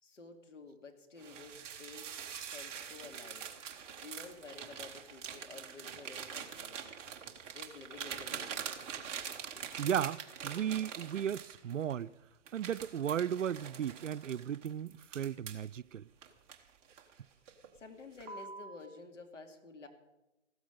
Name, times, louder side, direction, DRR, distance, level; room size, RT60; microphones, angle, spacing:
voice 1, 0.0-2.1 2.5-3.5 4.0-6.9 7.5-8.7 9.5-9.6 17.8-19.9, left 4 dB, 80° left, 2.6 m, -51 dB
sound 1, 1.2-12.0 12.5-15.7 16.2-17.1 17.5-17.8 18.2-18.8, right 7 dB, 15° right, 1.1 m, -44 dB
voice 2, 9.8-12.1 12.5-16.1, right 9 dB, 85° right, 0.6 m, -35 dB
15.5 x 13.0 x 5.3 m
hypercardioid pair, 145°, 36 cm